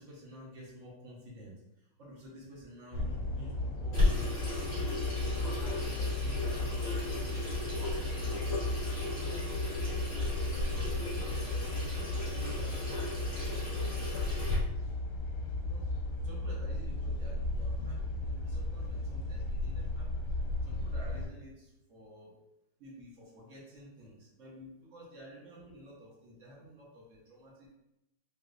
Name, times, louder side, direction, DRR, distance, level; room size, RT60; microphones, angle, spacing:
voice 1, 0.0-4.4 4.6-8.7 9.1-14.8 15.6-15.8 16.2-20.1 20.6-22.4 22.8-27.7, equal, 70° right, -4 dB, 0.7 m, -51 dB
sound 1, 2.9-21.3, left 2 dB, 85° left, 1.6 m, -35 dB
Water tap faucet / Sink (filling or washing), 3.9-14.5, left 2 dB, 20° left, 1.0 m, -36 dB
4.6 x 2.1 x 2.4 m, 0.88 s
omnidirectional pair, 2.4 m